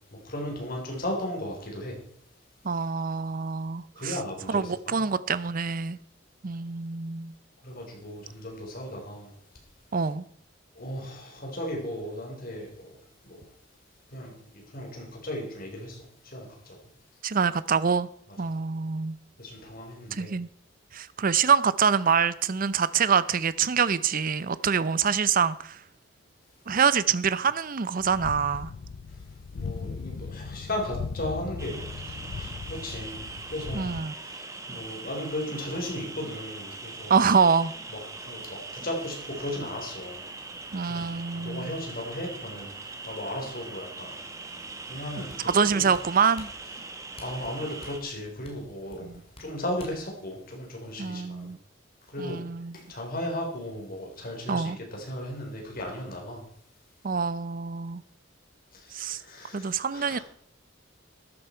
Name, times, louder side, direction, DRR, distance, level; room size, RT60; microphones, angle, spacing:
voice 1, 0.0-2.0 3.9-5.0 7.6-9.3 10.7-12.9 13.2-13.5 14.1-16.8 19.4-20.3 29.1-29.2 29.5-37.1 37.9-40.2 40.8-44.4 44.9-45.9 47.2-51.5 52.1-52.4 52.7-56.4 58.7-60.2, left 1 dB, 50° left, 4.1 m, -36 dB
voice 2, 2.6-4.2 4.5-6.0 6.4-7.3 9.9-10.2 17.2-18.1 18.4-19.2 20.1-20.5 20.9-25.8 26.7-28.7 33.7-34.1 37.1-37.7 40.7-41.7 45.4-46.5 49.0-49.1 51.0-51.6 52.2-52.8 54.5-54.8 57.0-58.0 58.9-59.2 59.5-60.2, right 6 dB, 45° right, 0.6 m, -25 dB
sound 1, 28.0-34.0, left 4 dB, 80° left, 0.5 m, -38 dB
sound 2, 31.6-48.0, right 3 dB, 15° right, 1.4 m, -41 dB
sound 3, 45.3-50.1 50.6-50.7, left 1 dB, 30° left, 2.7 m, -48 dB
13.0 x 10.5 x 4.5 m
head